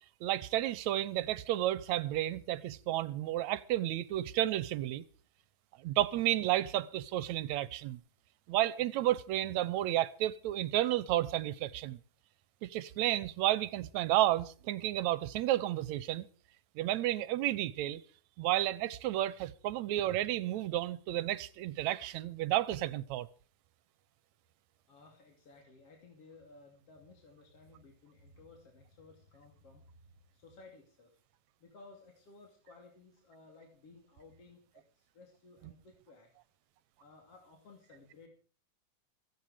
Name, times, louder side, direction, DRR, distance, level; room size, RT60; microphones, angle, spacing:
voice 1, 0.2-5.1 5.8-8.0 8.5-12.0 12.6-16.3 16.8-18.0 18.4-23.3, right 14 dB, 75° right, 2.0 m, -32 dB
voice 2, 24.9-31.2 31.6-36.3 37.0-38.3, left 3 dB, 50° left, 3.6 m, -57 dB
16.0 x 15.5 x 5.0 m
omnidirectional pair, 3.5 m